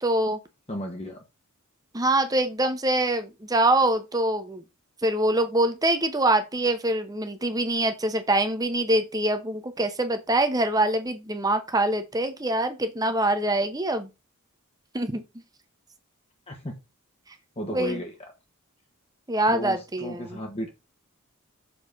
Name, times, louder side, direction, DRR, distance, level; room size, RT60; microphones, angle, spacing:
voice 1, 0.0-0.4 1.9-4.6 5.0-14.1 14.9-15.2 17.7-18.0 19.3-20.4, right 1 dB, 15° right, 0.9 m, -24 dB
voice 2, 0.7-1.2 16.5-16.8 17.6-18.1 19.5-20.7, left 1 dB, 30° left, 1.1 m, -34 dB
7.1 x 4.0 x 5.2 m
head